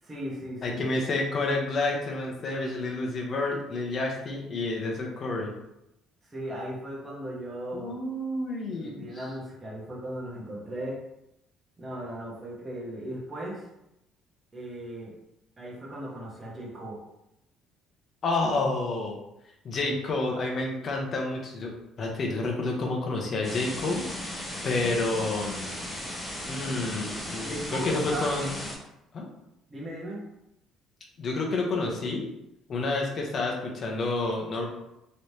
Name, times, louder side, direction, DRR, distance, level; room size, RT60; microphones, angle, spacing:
voice 1, 0.0-1.1 6.2-8.0 8.7-11.0 11.8-13.7 14.5-15.1 15.6-17.0 27.4-28.3 29.7-30.2, right 1 dB, 20° right, -5 dB, 1.1 m, -37 dB
voice 2, 0.6-5.5 7.7-9.2 18.2-19.2 19.6-25.7 26.5-28.5 29.1-29.3 31.2-32.2 32.7-34.7, left 2 dB, 40° left, 0 dB, 0.8 m, -29 dB
sound 1, 23.4-28.8, left 1 dB, 10° left, 1.3 m, -36 dB
3.2 x 3.1 x 2.8 m, 0.85 s
cardioid pair, 125°, 0 cm